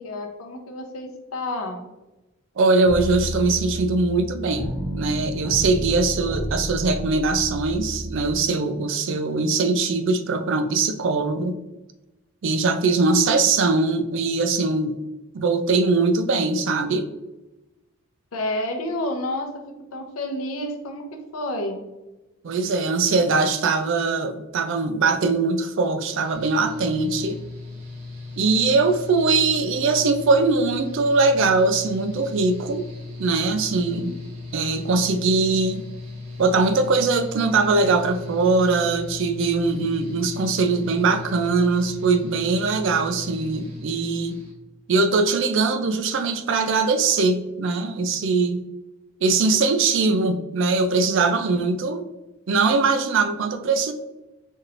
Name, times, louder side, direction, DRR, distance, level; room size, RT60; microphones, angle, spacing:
voice 1, 0.0-1.8 18.3-19.5 19.9-21.8, left 1 dB, 70° left, 3 dB, 0.7 m, -29 dB
voice 2, 2.6-11.5 12.4-14.9 15.3-17.1 22.4-27.4 28.4-32.8 33.2-34.1 34.5-35.8 36.4-44.4 44.9-48.6 49.2-52.0 52.5-53.9, right 3 dB, 55° right, 9 dB, 0.3 m, -21 dB
sound 1, 2.9-8.4, equal, 5° right, 0.8 m, -31 dB
Mechanical fan, 26.0-44.5, left 3 dB, 75° right, 1.2 m, -38 dB
4.5 x 3.0 x 2.4 m, 1.0 s
head